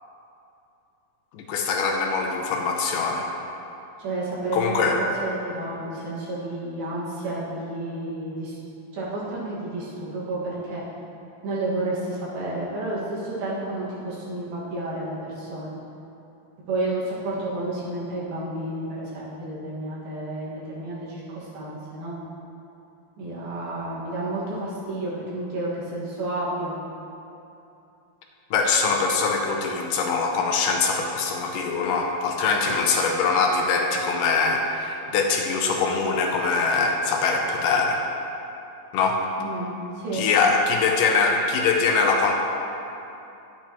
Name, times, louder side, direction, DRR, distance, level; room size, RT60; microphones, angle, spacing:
voice 1, 1.3-3.3 4.5-5.0 28.5-38.0 38.9-39.2 40.1-42.3, left 4 dB, 80° left, 1 dB, 2.2 m, -23 dB
voice 2, 4.0-8.6 8.9-10.8 11.4-15.8 16.7-22.2 23.2-26.7 39.4-39.7 40.0-40.3, right 2 dB, 90° right, -7 dB, 3.7 m, -31 dB
11.0 x 8.4 x 2.9 m, 2.8 s
omnidirectional pair, 4.1 m